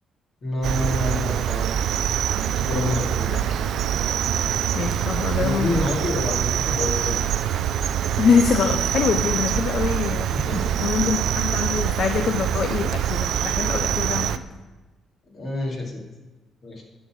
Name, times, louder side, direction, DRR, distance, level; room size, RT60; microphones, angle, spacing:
voice 1, 0.4-1.8 2.5-3.7 5.4-7.2 10.3-10.7 15.3-16.0 16.6-16.8, left 2 dB, 45° left, -2 dB, 2.5 m, -28 dB
Cricket, 0.6-14.4, right 9 dB, 75° right, 0.4 m, -24 dB
voice 2, 4.7-5.8 8.2-10.3 10.8-14.4, left 6 dB, 60° left, 6 dB, 0.5 m, -24 dB
11.0 x 4.1 x 6.0 m, 1.2 s
cardioid pair, 90°, 0 cm